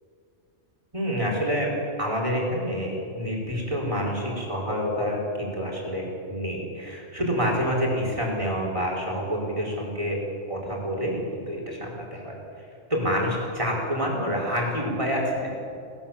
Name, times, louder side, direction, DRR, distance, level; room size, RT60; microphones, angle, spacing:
voice 1, 0.9-10.2 10.5-12.4 12.9-15.5, equal, 25° right, -2 dB, 4.9 m, -27 dB
19.5 x 19.0 x 7.3 m, 2.5 s
omnidirectional pair, 1.3 m